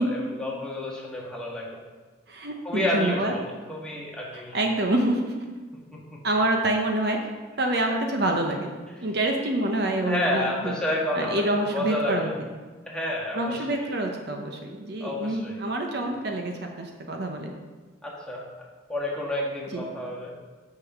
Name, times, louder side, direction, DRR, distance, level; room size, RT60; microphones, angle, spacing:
voice 1, 0.0-1.8 2.6-3.4 3.7-4.6 5.9-6.2 10.0-11.4 11.7-12.3 12.9-13.5 15.0-15.6 18.0-20.3, left 1 dB, 5° left, -4 dB, 1.5 m, -30 dB
voice 2, 2.3-3.4 4.3-5.4 6.2-7.2 7.6-8.7 9.0-10.7 11.1-12.3 13.3-17.5 19.7-19.8, right 1 dB, 55° right, 2 dB, 0.9 m, -26 dB
7.0 x 6.5 x 6.0 m, 1.4 s
head